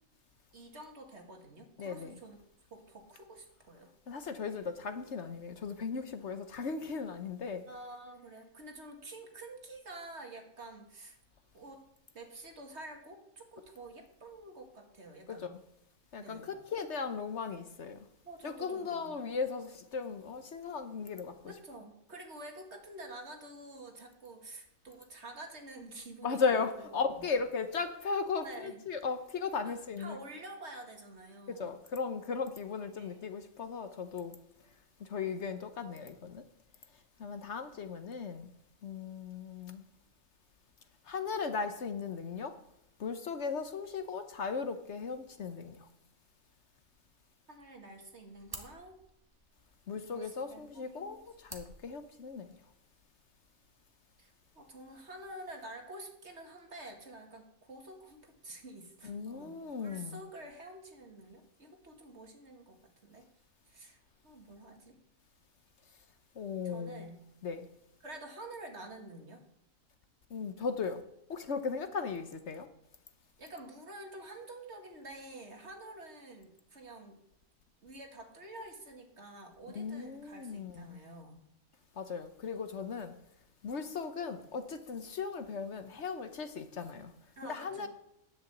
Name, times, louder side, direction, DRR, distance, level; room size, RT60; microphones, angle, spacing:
voice 1, 0.5-2.4 2.7-3.9 7.7-11.2 11.5-11.8 12.1-15.6 16.2-16.5 18.2-19.2 21.5-27.2 28.4-28.8 29.7-31.7 33.0-33.2 47.5-49.0 50.0-51.2 54.2-63.3 63.7-65.0 66.6-67.2 68.0-69.4 73.4-77.2 77.8-81.4 87.4-87.9, right 2 dB, 55° right, 2.2 m, -49 dB
voice 2, 1.8-2.2 4.1-7.6 15.3-15.4 16.1-18.0 18.4-21.3 26.2-30.2 31.5-34.3 35.0-36.4 37.2-38.5 38.8-39.8 41.1-42.5 43.0-45.8 49.9-52.6 59.0-60.2 66.4-67.2 67.4-67.7 70.3-71.0 71.3-72.7 79.7-81.0 82.0-83.1 83.6-87.1 87.5-87.9, left 5 dB, 60° left, 1.1 m, -37 dB
sound 1, 47.7-52.7, right 1 dB, 15° right, 1.5 m, -53 dB
10.5 x 6.8 x 8.0 m
omnidirectional pair, 1.4 m